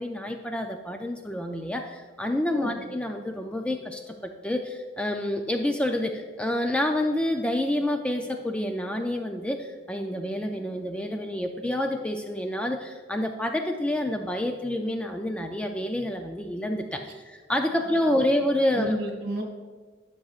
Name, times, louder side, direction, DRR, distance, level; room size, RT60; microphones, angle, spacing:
voice 1, 0.0-19.0, left 1 dB, 5° left, 4 dB, 0.4 m, -28 dB
voice 2, 2.5-2.8 17.7-18.4 18.7-19.4, right 1 dB, 60° right, 1 dB, 1.8 m, -32 dB
11.0 x 6.2 x 2.4 m, 1.5 s
head